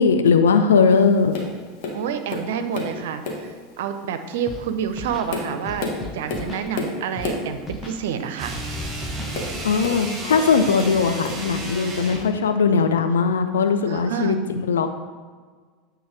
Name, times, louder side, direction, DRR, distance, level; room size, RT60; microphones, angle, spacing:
voice 1, 0.0-1.3 9.6-14.9, left 5 dB, 75° left, 7 dB, 0.5 m, -19 dB
Tap, 1.3-1.6 1.8-3.0 3.2-3.6 4.2-4.4 5.0-7.5 9.3-10.5 10.8-11.5 12.2-12.3, left 2 dB, 55° left, 1.3 m, -30 dB
voice 2, 1.9-5.9 6.1-8.5 13.0-13.1 13.9-14.4, right 8 dB, 65° right, 9 dB, 0.5 m, -28 dB
Scratching (performance technique), 4.5-4.6 4.9-5.3 5.7-6.7 7.2-7.3 7.6-8.0 8.5-9.4, left 2 dB, 20° left, 1.0 m, -36 dB
sound 1, 8.3-12.3, right 2 dB, 20° right, 1.5 m, -32 dB
8.6 x 3.4 x 4.7 m, 1.5 s
figure-of-eight pair, 80°, 0 cm